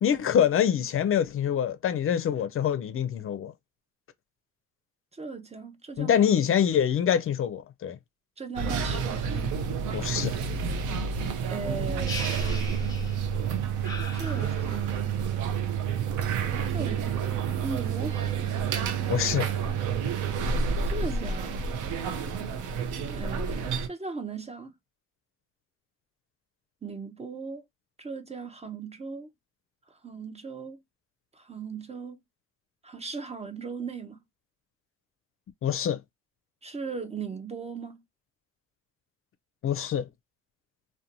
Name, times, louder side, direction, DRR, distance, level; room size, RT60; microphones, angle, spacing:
voice 1, 0.0-3.5 6.0-8.0 9.9-10.4 19.1-19.5 35.6-36.0 39.6-40.1, left 9 dB, 45° left, 0.4 m, -25 dB
voice 2, 5.1-6.2 8.4-9.4 11.5-12.6 14.1-15.2 16.7-18.4 20.9-21.7 23.1-24.7 26.8-27.6 28.0-29.3 30.0-30.8 31.3-32.2 32.8-34.2 36.6-38.0, right 4 dB, 20° right, 0.4 m, -38 dB
sound 1, 8.6-23.9, right 6 dB, 80° right, 0.6 m, -29 dB
sound 2, 12.1-13.4 13.8-15.1, left 2 dB, 10° left, 0.8 m, -39 dB
2.5 x 2.1 x 2.7 m
cardioid pair, 90°, 30 cm